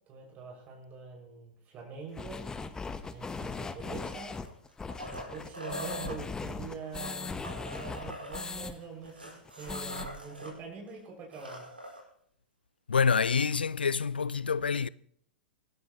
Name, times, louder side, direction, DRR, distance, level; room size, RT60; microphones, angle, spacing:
voice 1, 0.1-2.5 3.1-4.4 5.1-7.4 7.7-11.7, right 5 dB, 30° right, 6.3 m, -44 dB
sound 1, 2.1-8.7 9.0-9.1 9.4-10.1, left 4 dB, 15° left, 1.1 m, -39 dB
sound 2, 4.3-6.2 6.8-10.5 10.9-11.0 11.2-12.0 13.5-13.6, right 1 dB, 85° right, 5.2 m, -43 dB
voice 2, 12.9-14.9, left 5 dB, 80° left, 0.4 m, -27 dB
24.5 x 12.5 x 3.1 m
figure-of-eight pair, 100°, 5 cm